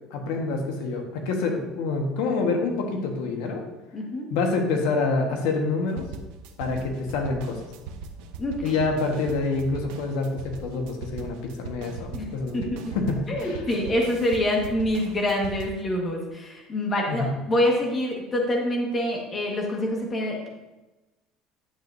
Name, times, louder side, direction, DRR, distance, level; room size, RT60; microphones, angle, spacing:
voice 1, 0.1-3.6 4.3-6.1 6.6-7.6 8.6-12.7 12.9-13.6 17.1-17.3, left 3 dB, 85° left, 2 dB, 1.5 m, -27 dB
voice 2, 3.9-4.3 8.4-8.8 12.1-12.3 12.5-12.9 13.3-20.5, left 1 dB, 20° left, -1 dB, 1.6 m, -26 dB
sound 1, 6.0-15.8, right 5 dB, 90° right, 0.8 m, -39 dB
10.0 x 7.9 x 2.7 m, 1.1 s
cardioid pair, 165°, 0 cm